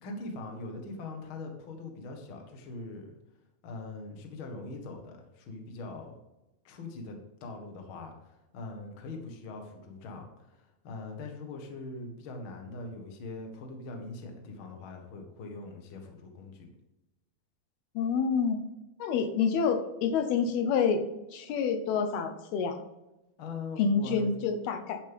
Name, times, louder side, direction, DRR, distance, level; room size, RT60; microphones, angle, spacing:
voice 1, 0.0-3.1 3.6-6.1 6.6-16.7 23.4-24.3, left 3 dB, 50° left, 3 dB, 1.6 m, -42 dB
voice 2, 18.0-18.6 19.0-21.0 21.3-22.8 23.8-25.0, left 6 dB, 80° left, 6 dB, 2.9 m, -27 dB
11.0 x 7.3 x 3.6 m, 0.96 s
omnidirectional pair, 4.5 m